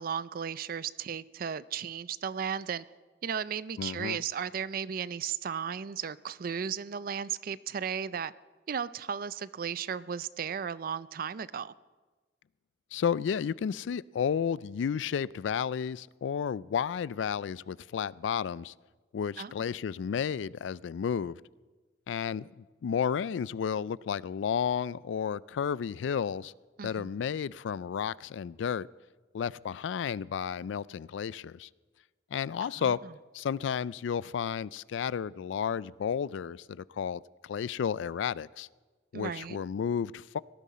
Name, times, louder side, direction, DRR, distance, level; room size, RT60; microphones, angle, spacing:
voice 1, 0.0-2.8 3.2-8.3 8.7-11.7 19.4-19.5 26.8-27.1 32.6-32.9 39.1-39.6, right 7 dB, 50° right, 0.4 m, -35 dB
voice 2, 3.8-4.2 12.9-18.7 19.1-21.4 22.1-26.5 26.8-28.9 29.3-31.7 32.3-33.0 33.3-38.7 39.1-40.4, left 7 dB, 90° left, 0.3 m, -32 dB
18.0 x 14.0 x 4.2 m
head